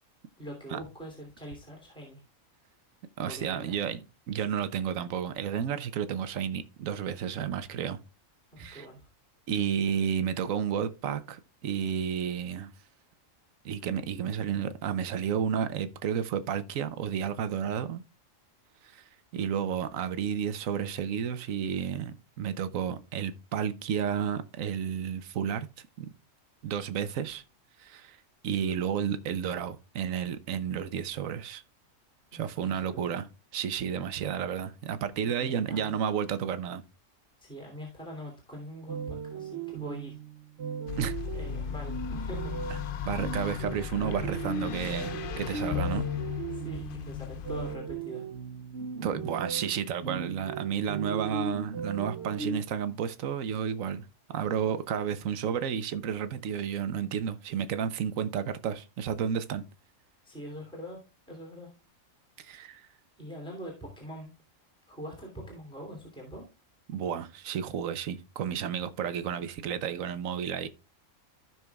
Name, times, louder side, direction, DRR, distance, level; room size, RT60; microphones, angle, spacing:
voice 1, 0.4-2.2 3.2-3.9 7.4-7.5 8.5-9.1 32.3-33.0 35.2-35.9 37.4-40.2 41.3-42.5 45.4-45.5 46.5-48.3 49.0-49.3 60.2-61.0 61.3-61.7 62.8-62.9 63.2-64.3 64.9-66.4, equal, 5° left, 2.8 m, -43 dB
voice 2, 3.2-4.0 4.3-8.0 8.6-8.9 9.5-12.7 13.6-18.0 18.8-19.0 19.3-25.7 26.0-26.1 26.6-27.4 27.8-28.2 28.4-31.6 32.3-33.3 33.5-36.8 41.0-41.2 43.0-46.0 49.0-54.1 54.3-59.6 62.4-62.9 66.9-70.7, right 8 dB, 80° right, 1.2 m, -31 dB
sound 1, 38.9-52.6, right 5 dB, 60° right, 0.9 m, -38 dB
sound 2, 40.9-47.8, left 11 dB, 60° left, 0.5 m, -36 dB
15.5 x 6.0 x 2.3 m
omnidirectional pair, 1.4 m